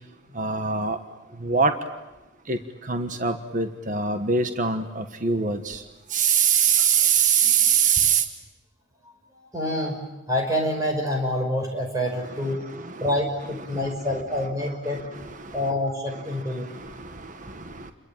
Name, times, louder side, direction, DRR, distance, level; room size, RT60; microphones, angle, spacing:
voice 1, 0.3-1.0 1.4-1.7 2.5-5.8 6.1-8.2 12.2-13.1 13.7-13.9 14.8-15.7 16.3-17.9, right 6 dB, 40° right, 8 dB, 1.4 m, -24 dB
voice 2, 9.0-12.6 13.0-15.1 15.5-16.7, left 1 dB, 15° right, 2 dB, 5.8 m, -27 dB
29.0 x 22.5 x 9.0 m, 1.1 s
head